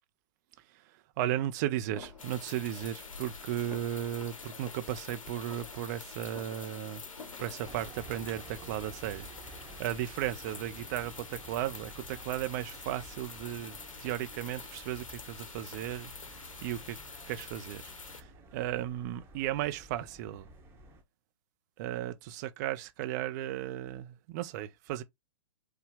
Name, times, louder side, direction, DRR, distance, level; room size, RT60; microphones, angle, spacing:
voice 1, 1.2-7.0 7.4-9.3 9.8-16.1 16.6-17.0 17.3-20.5 21.8-25.0, right 12 dB, 30° right, 0.6 m, -35 dB
sound 1, 1.9-7.7, left 4 dB, 45° left, 2.5 m, -51 dB
sound 2, 2.2-18.2, left 4 dB, 65° left, 0.9 m, -47 dB
sound 3, 7.6-21.0, right 2 dB, 15° right, 1.1 m, -52 dB
4.7 x 2.3 x 3.4 m
figure-of-eight pair, 120°, 18 cm